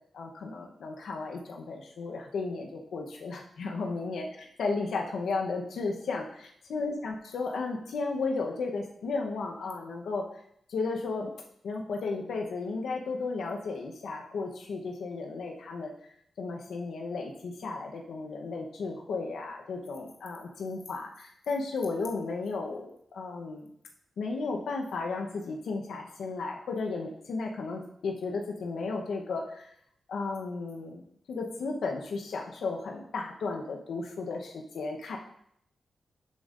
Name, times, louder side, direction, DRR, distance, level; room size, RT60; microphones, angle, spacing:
voice 1, 0.1-10.3 10.7-11.3 11.6-15.9 16.4-23.7 24.2-29.7 30.1-31.0 31.3-35.2, left 3 dB, 85° left, 1 dB, 0.8 m, -34 dB
11.5 x 5.1 x 2.5 m, 0.69 s
cardioid pair, 65°, 0 cm